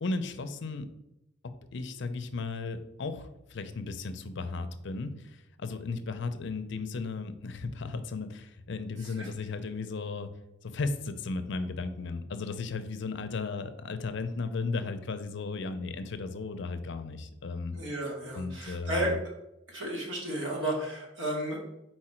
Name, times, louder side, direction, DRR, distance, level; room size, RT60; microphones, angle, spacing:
voice 1, 0.0-0.9 1.4-10.3 10.6-17.8 18.3-19.2, left 3 dB, 65° left, 10 dB, 0.5 m, -35 dB
voice 2, 17.7-19.1 19.7-21.6, right 1 dB, 70° right, -2 dB, 1.9 m, -33 dB
4.8 x 4.5 x 4.4 m, 0.90 s
head